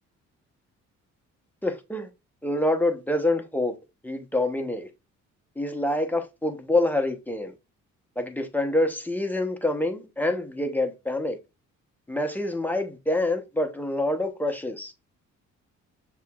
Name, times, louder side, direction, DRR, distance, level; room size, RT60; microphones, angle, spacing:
voice 1, 1.6-2.1 2.4-3.8 4.0-4.9 5.6-7.5 8.2-11.4 12.1-14.9, left 1 dB, 5° left, 0.9 m, -26 dB
6.5 x 3.0 x 2.4 m
cardioid pair, 90°, 30 cm